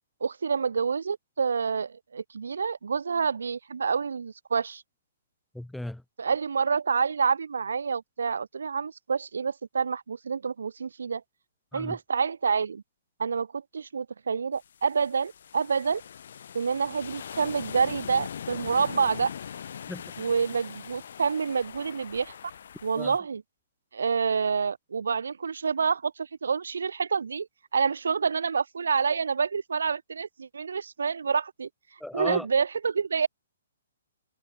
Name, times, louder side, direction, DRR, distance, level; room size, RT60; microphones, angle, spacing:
voice 1, 0.2-4.8 6.2-11.2 11.7-12.8 13.2-16.0 16.5-19.3 20.2-22.3 22.8-23.4 23.9-27.5 27.7-31.7 32.1-33.3, right 5 dB, 85° right, 1.9 m, -28 dB
voice 2, 5.6-6.0 11.7-12.0 19.9-20.0 23.0-23.1 32.0-32.5, left 1 dB, ahead, 1.7 m, -35 dB
sound 1, 14.6-23.2, left 8 dB, 65° left, 1.6 m, -41 dB
hypercardioid pair, 145°, 0 cm